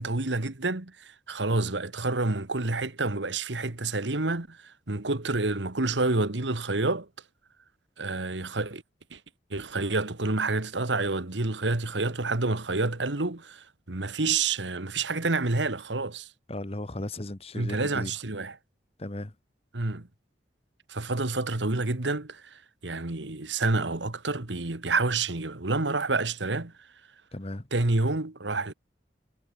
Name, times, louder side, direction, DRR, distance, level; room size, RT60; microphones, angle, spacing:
voice 1, 0.0-7.1 8.0-8.8 9.1-9.2 9.5-16.3 17.6-18.5 19.7-20.1 20.9-22.4 22.8-26.7 27.7-28.7, right 3 dB, 85° right, 1.8 m, -28 dB
voice 2, 16.5-18.1 19.0-19.3 27.3-27.7, left 1 dB, 35° left, 1.4 m, -36 dB
head